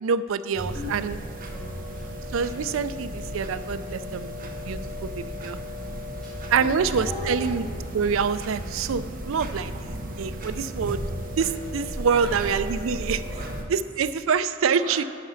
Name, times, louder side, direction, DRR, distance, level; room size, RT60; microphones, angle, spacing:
voice 1, 0.0-1.1 2.3-4.3 4.7-5.6 6.5-7.7 7.9-11.0 11.4-13.2 13.7-15.0, right 6 dB, 85° right, 14 dB, 0.4 m, -26 dB
sound 1, 0.5-13.6, equal, 45° right, 1.0 m, -34 dB
voice 2, 1.5-2.4 3.5-3.6 4.0-4.1 4.5-5.1 5.4-5.6 6.2-7.8 12.1-12.5 13.2-13.5 14.7-15.0, left 1 dB, 5° left, -11 dB, 1.8 m, -40 dB
11.0 x 5.0 x 5.7 m, 2.4 s
head